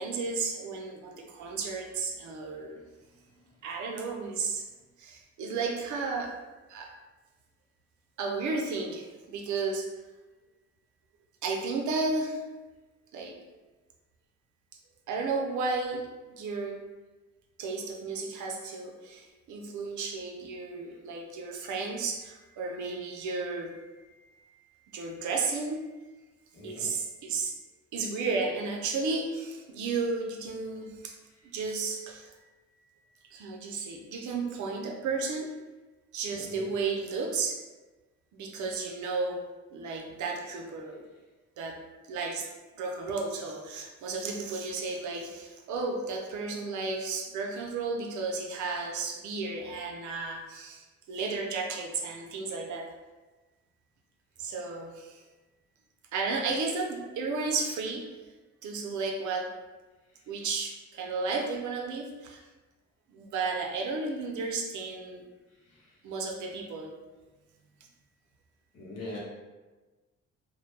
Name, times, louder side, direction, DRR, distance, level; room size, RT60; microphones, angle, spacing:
voice 1, 0.0-2.8 3.6-4.7 5.0-6.3 6.7-6.9 8.2-9.9 11.4-12.4 13.1-13.4 15.1-16.8 17.6-24.2 24.9-25.9 26.6-27.6 27.9-31.2 31.4-32.4 33.3-35.5 36.1-37.6 38.3-41.0 41.6-41.8 42.1-42.5 42.8-52.9 54.4-55.2 56.1-58.1 58.6-59.5 60.3-62.4 63.1-65.2 66.0-66.9, right 4 dB, 75° right, 1 dB, 0.5 m, -33 dB
voice 2, 26.5-26.9 36.3-36.7 65.6-65.9 68.7-69.2, left 2 dB, 55° left, -5 dB, 1.0 m, -42 dB
2.2 x 2.1 x 3.1 m, 1.2 s
cardioid pair, 90°, 30 cm